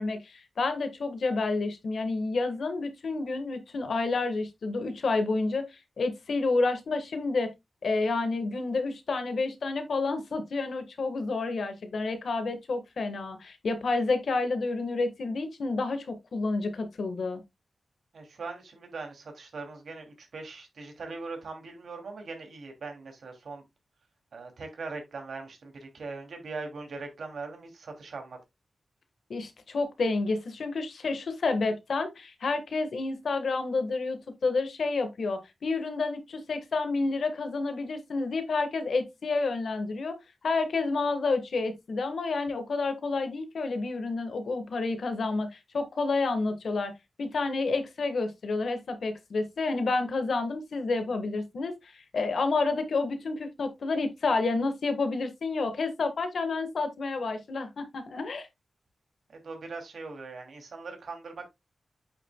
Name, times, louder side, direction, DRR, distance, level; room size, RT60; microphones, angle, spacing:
voice 1, 0.0-7.5 7.8-17.4 29.3-40.1 40.4-46.9 47.2-58.5, left 3 dB, 65° left, 1.4 m, -29 dB
voice 2, 18.1-23.6 24.3-28.4 59.4-61.5, right 3 dB, 70° right, 2.6 m, -40 dB
8.6 x 6.0 x 2.2 m
wide cardioid pair, 155°, 0 cm